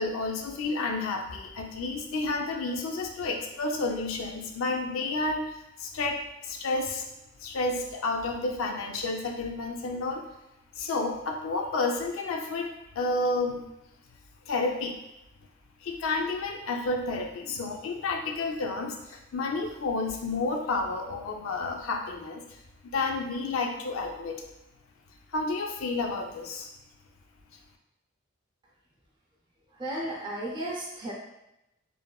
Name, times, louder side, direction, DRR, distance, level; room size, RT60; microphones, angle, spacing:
voice 1, 0.0-7.1 7.4-10.2 10.8-13.6 14.5-14.9 15.8-22.4 22.9-24.4 25.3-26.7, left 3 dB, 75° left, 2 dB, 0.4 m, -30 dB
voice 2, 29.7-31.1, right 1 dB, 25° right, -3 dB, 0.5 m, -34 dB
3.1 x 2.1 x 2.2 m, 0.88 s
head